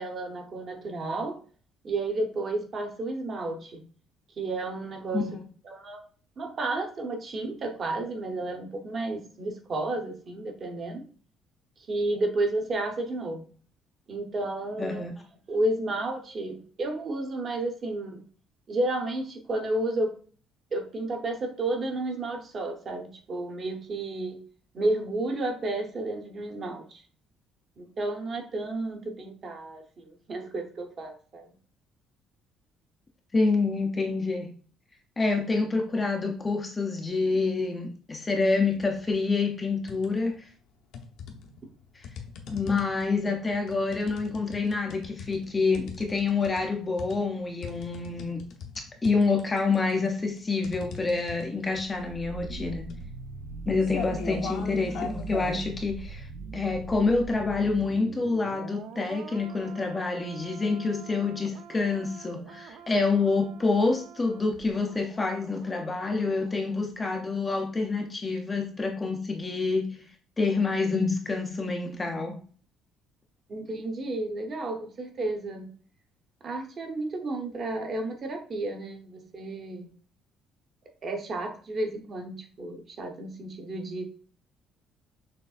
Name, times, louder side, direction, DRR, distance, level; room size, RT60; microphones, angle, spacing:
voice 1, 0.0-1.4 1.8-3.8 4.4-5.3 5.6-6.0 6.4-11.1 11.9-13.5 14.1-15.0 15.5-18.2 18.7-20.1 20.7-24.4 24.7-27.0 27.8-31.5 73.5-75.7 76.4-79.9 81.0-84.0, right 2 dB, 30° right, 4 dB, 0.9 m, -32 dB
voice 2, 14.8-15.1 33.3-34.5 35.2-40.5 42.0-42.1 42.5-48.4 49.0-52.9 53.7-56.3 56.5-70.0 70.4-72.4, left 3 dB, 15° left, 3 dB, 0.5 m, -27 dB
sound 1, 38.7-39.1 39.5-40.4 40.9-55.6, left 6 dB, 65° left, 0.8 m, -41 dB
sound 2, 51.6-66.6 66.9-67.0, right 5 dB, 65° right, 0.5 m, -43 dB
6.5 x 3.2 x 2.4 m, 0.41 s
cardioid pair, 180°, 0 cm